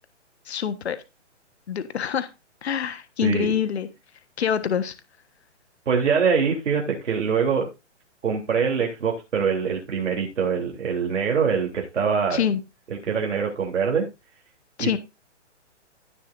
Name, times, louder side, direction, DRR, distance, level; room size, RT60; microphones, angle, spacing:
voice 1, 0.5-1.0 1.7-2.3 2.6-3.9 4.4-4.9 12.3-12.6 14.8-15.0, left 8 dB, 60° left, 11 dB, 1.3 m, -25 dB
voice 2, 3.2-3.5 5.8-7.7 8.2-12.4 13.0-14.1 14.8-15.0, right 6 dB, 80° right, -1 dB, 3.3 m, -24 dB
16.0 x 6.9 x 2.6 m, 0.26 s
hypercardioid pair, 180°, 36 cm